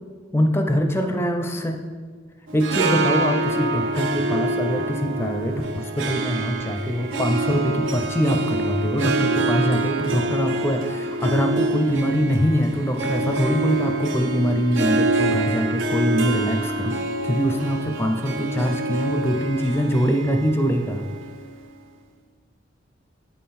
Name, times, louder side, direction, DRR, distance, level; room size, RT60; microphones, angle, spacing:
voice 1, 0.3-1.8 2.5-17.0 17.2-21.0, equal, 15° left, 4 dB, 0.5 m, -23 dB
Harp, 2.5-21.8, right 2 dB, 80° right, 0.5 m, -26 dB
8.7 x 3.7 x 4.2 m, 1.5 s
head